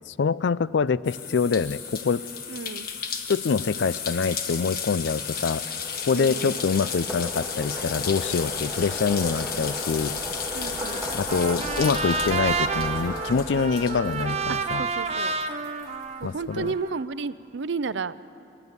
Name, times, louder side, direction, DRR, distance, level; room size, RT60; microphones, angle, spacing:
voice 1, 0.1-2.2 3.3-5.6 6.1-10.2 11.1-14.9 16.2-16.7, left 5 dB, 70° left, 19 dB, 0.4 m, -25 dB
sound 1, 1.0-15.1 15.4-16.6, left 7 dB, 50° left, 1.5 m, -34 dB
voice 2, 2.5-2.9 6.1-6.6 10.5-11.1 14.5-15.4 16.2-18.2, right 4 dB, 70° right, 16 dB, 0.5 m, -32 dB
sound 2, 4.7-15.4, equal, 5° right, 2.9 m, -37 dB
Trumpet, 10.8-17.0, right 4 dB, 35° right, 0.7 m, -30 dB
28.0 x 11.5 x 8.2 m, 2.7 s
head